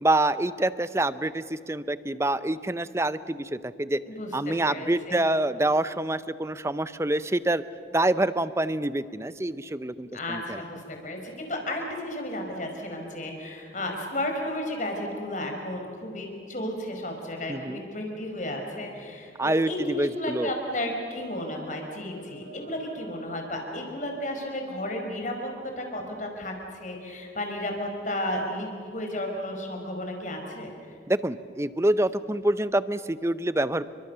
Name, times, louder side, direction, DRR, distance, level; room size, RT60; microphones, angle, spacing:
voice 1, 0.0-4.0 4.3-7.6 7.9-10.6 17.5-17.8 19.4-20.5 31.1-33.9, right 1 dB, 15° right, 15 dB, 0.6 m, -26 dB
voice 2, 4.1-5.2 10.1-25.5 25.8-30.7, left 1 dB, 40° left, 3 dB, 4.9 m, -33 dB
Mosque Call for Prayer, 19.7-26.0, right 1 dB, 90° right, 6.6 m, -52 dB
29.5 x 24.0 x 6.8 m, 2.6 s
head